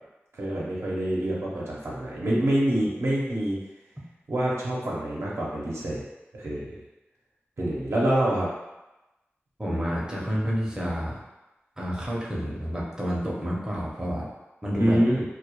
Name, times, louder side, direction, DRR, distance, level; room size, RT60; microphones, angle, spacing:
voice 1, 0.3-3.6 4.3-6.0 6.4-6.7 7.6-8.5 14.8-15.2, right 1 dB, 75° right, -5 dB, 0.6 m, -26 dB
voice 2, 9.6-11.2 11.8-14.3 14.6-15.0, equal, 15° right, -5 dB, 0.5 m, -29 dB
2.2 x 2.1 x 2.8 m, 1.0 s
wide cardioid pair, 85°, 4 cm